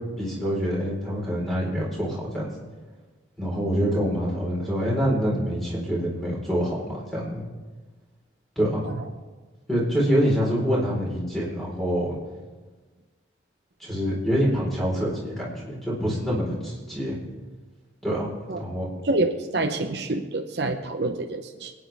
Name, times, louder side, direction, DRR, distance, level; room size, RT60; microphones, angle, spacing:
voice 1, 0.2-2.5 3.4-7.4 8.6-8.8 9.7-12.2 13.8-17.2 18.0-18.9, equal, ahead, -5 dB, 4.3 m, -26 dB
voice 2, 19.0-21.7, right 2 dB, 60° right, 5 dB, 0.8 m, -27 dB
26.5 x 9.7 x 3.5 m, 1.3 s
head